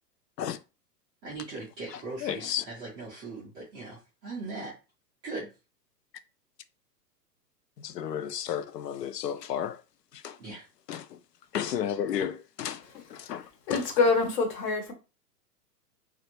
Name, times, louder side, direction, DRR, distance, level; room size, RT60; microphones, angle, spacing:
voice 1, 1.2-4.7 5.2-5.5 10.4-10.7, right 3 dB, 10° right, 0.4 m, -39 dB
voice 2, 1.9-2.6 7.8-9.8 10.2-10.4 10.9-11.1 11.5-13.4 13.7-13.8, left 9 dB, 75° left, 0.6 m, -33 dB
voice 3, 13.7-14.9, left 4 dB, 25° left, 0.9 m, -25 dB
3.1 x 2.5 x 2.9 m
hypercardioid pair, 115°, 49 cm